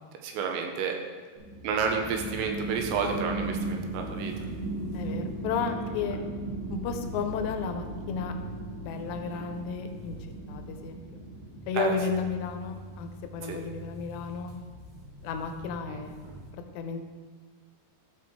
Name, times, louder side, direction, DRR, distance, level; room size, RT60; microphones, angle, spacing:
voice 1, 0.2-1.0 1.6-4.5 11.7-11.9 13.4-13.6 15.9-16.0, right 5 dB, 80° right, 3 dB, 3.2 m, -30 dB
sound 1, 1.4-13.4, right 2 dB, 65° right, 4.9 m, -38 dB
sound 2, 1.8-16.5, right 2 dB, 50° right, 3.4 m, -45 dB
voice 2, 4.9-6.2 6.7-8.3 8.8-10.1 10.5-11.0 11.7-14.5 15.2-16.3 16.5-17.0, left 6 dB, 85° left, 6 dB, 2.9 m, -33 dB
14.0 x 5.5 x 4.6 m, 1.5 s
omnidirectional pair, 5.1 m